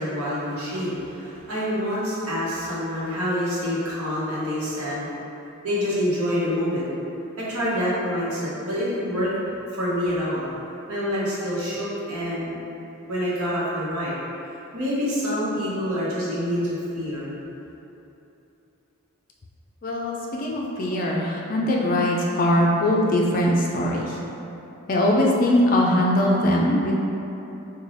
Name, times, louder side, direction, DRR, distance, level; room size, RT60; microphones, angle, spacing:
voice 1, 0.0-5.1 5.6-6.9 7.4-9.3 9.7-10.4 10.9-12.7 13.1-14.2 14.7-17.3, equal, 80° right, -8 dB, 1.0 m, -26 dB
voice 2, 19.8-24.2 24.9-26.9, left 1 dB, 40° left, -2 dB, 0.4 m, -21 dB
3.2 x 2.2 x 3.9 m, 2.9 s
head